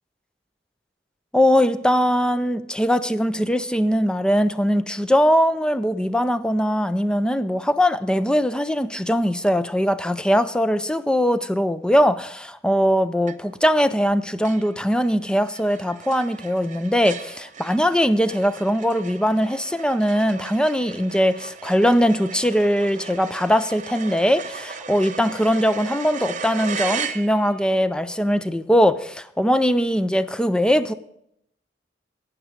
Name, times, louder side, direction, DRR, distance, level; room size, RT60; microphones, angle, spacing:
voice 1, 1.3-30.9, equal, 5° left, 0.4 m, -21 dB
sound 1, 13.3-13.7 14.1-14.2 14.4-27.7, right 6 dB, 45° right, 0.7 m, -36 dB
12.0 x 9.3 x 5.1 m
head